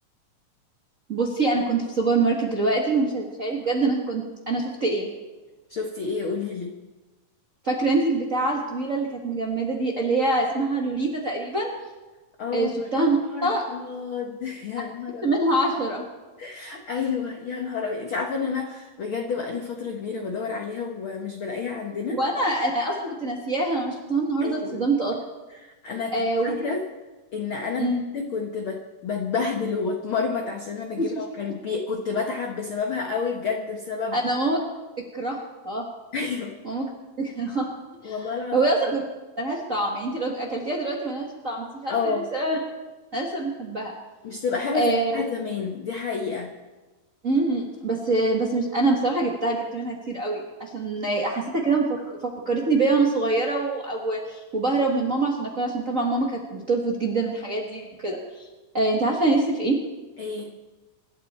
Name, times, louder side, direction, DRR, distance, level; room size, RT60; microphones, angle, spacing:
voice 1, 1.1-5.1 7.6-11.7 12.5-13.6 15.2-16.1 22.1-25.1 26.1-26.5 27.8-28.1 31.0-31.2 34.1-34.6 35.1-35.8 36.6-36.9 37.2-37.7 38.0-39.0 39.4-42.6 43.1-43.9 44.7-45.1 47.2-58.5 58.7-59.8, right 2 dB, 40° right, -1 dB, 1.2 m, -25 dB
voice 2, 5.7-6.7 12.4-13.1 13.3-15.4 16.4-22.2 24.4-24.8 25.6-26.8 27.3-34.2 36.1-36.6 38.0-38.6 41.9-42.3 44.2-46.5 60.2-60.5, left 5 dB, 65° left, 2 dB, 1.3 m, -29 dB
25.5 x 12.0 x 4.4 m, 1.2 s
omnidirectional pair, 4.1 m